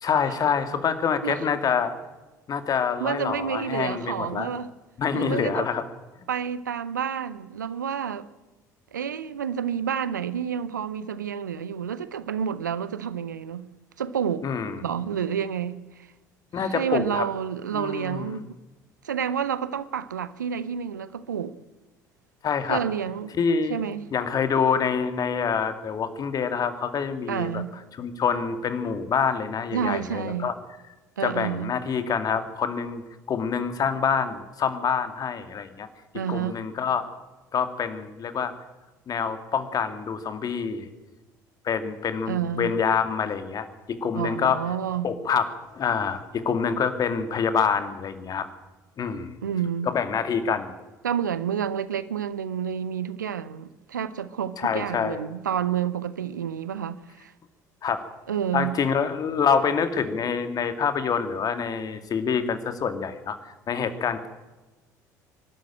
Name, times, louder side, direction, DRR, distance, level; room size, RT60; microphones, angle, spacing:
voice 1, 0.0-1.9 2.5-4.5 5.0-5.8 14.4-14.8 16.5-17.2 17.7-18.4 22.4-22.8 23.4-23.8 24.1-27.6 27.9-30.5 31.2-33.0 33.3-35.9 36.3-37.0 37.5-38.5 39.1-40.9 41.6-44.6 45.0-48.5 49.0-49.4 49.8-50.7 54.6-55.3 57.8-58.1 58.5-63.4 63.7-64.3, left 6 dB, 40° left, 2.2 m, -26 dB
voice 2, 3.0-4.7 5.1-5.7 6.3-8.3 8.9-13.7 14.0-14.5 14.8-16.1 16.6-18.6 19.0-21.6 22.7-23.3 23.7-24.1 27.3-27.7 29.7-30.6 31.2-31.7 36.1-36.6 42.3-42.7 44.1-45.1 49.4-49.9 51.0-57.3 58.3-58.8, right 8 dB, 80° right, 0.8 m, -29 dB
24.0 x 12.5 x 8.9 m
figure-of-eight pair, 60°, 10 cm